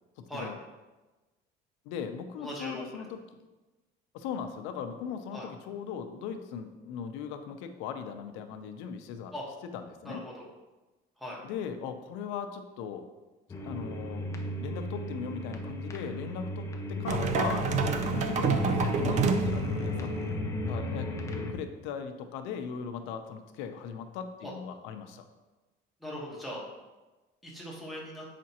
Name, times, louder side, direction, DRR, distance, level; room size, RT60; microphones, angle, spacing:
voice 1, 1.9-3.2 4.1-9.3 9.7-10.2 11.4-13.1 13.6-14.3 14.6-17.7 18.1-20.1 20.7-25.2, left 7 dB, 85° left, 8 dB, 0.7 m, -38 dB
voice 2, 2.4-2.8 5.3-5.5 9.3-9.4 10.0-10.5 11.2-11.4 24.4-24.5 26.0-26.6 27.4-28.2, equal, ahead, -4 dB, 1.3 m, -39 dB
sound 1, 13.5-21.5, left 2 dB, 15° left, 0.5 m, -34 dB
sound 2, 17.1-20.4, right 6 dB, 40° right, 0.5 m, -29 dB
7.4 x 5.1 x 2.9 m, 1.1 s
cardioid pair, 160°, 19 cm